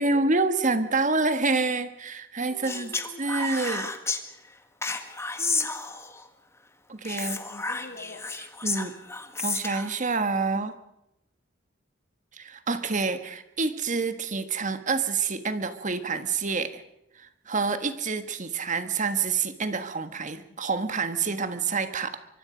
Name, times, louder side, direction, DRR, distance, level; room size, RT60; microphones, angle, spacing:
voice 1, 0.0-2.9 3.2-3.9 6.9-7.4 8.6-8.9 9.4-10.8 12.3-16.8 17.2-22.2, right 4 dB, 40° right, 10 dB, 1.5 m, -27 dB
voice 2, 2.5-3.2 5.4-5.8 7.2-8.3, left 1 dB, 50° left, 1 dB, 2.3 m, -45 dB
Speech, 2.6-4.2 4.8-6.2 7.0-9.9, left 3 dB, 15° left, 1.5 m, -31 dB
24.5 x 24.0 x 5.1 m, 0.84 s
head